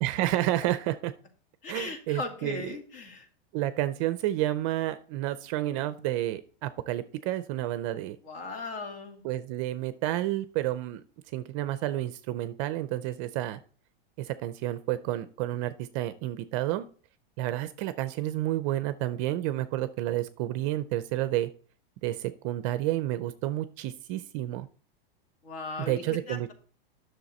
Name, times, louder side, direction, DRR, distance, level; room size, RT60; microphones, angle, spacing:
voice 1, 0.0-1.1 1.7-2.8 3.5-8.2 9.2-11.0 11.3-13.6 14.2-16.9 17.4-21.5 22.0-24.7 25.9-26.5, right 14 dB, 35° right, 13 dB, 0.4 m, -30 dB
voice 2, 1.6-3.3 8.2-9.2 25.4-26.5, left 3 dB, 70° left, 4 dB, 2.4 m, -38 dB
10.5 x 6.4 x 4.2 m, 0.42 s
supercardioid pair, 160°, 29 cm